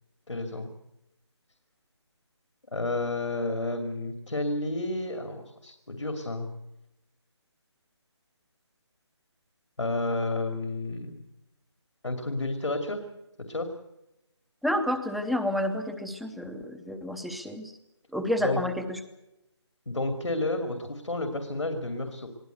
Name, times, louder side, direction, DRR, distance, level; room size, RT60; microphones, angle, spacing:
voice 1, 0.3-0.7 2.7-6.5 9.8-11.2 12.0-13.0 13.4-13.7 18.4-18.6 19.9-22.3, left 2 dB, 85° left, 6 dB, 2.7 m, -31 dB
voice 2, 14.6-17.7 18.1-19.0, left 1 dB, ahead, 9 dB, 0.7 m, -30 dB
23.0 x 16.0 x 8.0 m, 0.90 s
figure-of-eight pair, 160°, 15 cm